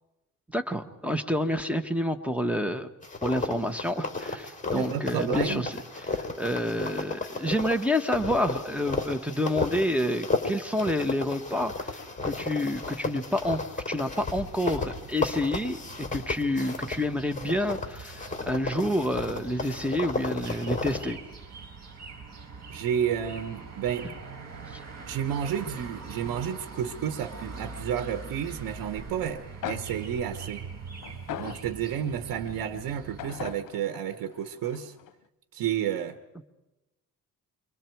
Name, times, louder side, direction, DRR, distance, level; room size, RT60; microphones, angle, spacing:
voice 1, 0.5-2.9 3.2-5.8 6.1-21.2 24.7-24.8, left 1 dB, 5° right, 7 dB, 1.4 m, -29 dB
sound 1, 3.0-17.0 17.3-21.1, left 3 dB, 20° left, 3.7 m, -33 dB
voice 2, 4.7-5.6 22.7-24.1 25.1-30.6 31.4-34.9 35.5-36.2, right 9 dB, 90° right, 8 dB, 1.1 m, -31 dB
sound 2, 14.2-33.6, right 5 dB, 50° right, 5.1 m, -43 dB
sound 3, 29.3-29.4 29.6-32.2 33.2-35.1, left 9 dB, 70° left, 0.9 m, -40 dB
29.0 x 24.0 x 4.6 m, 0.99 s
cardioid pair, 95°, 34 cm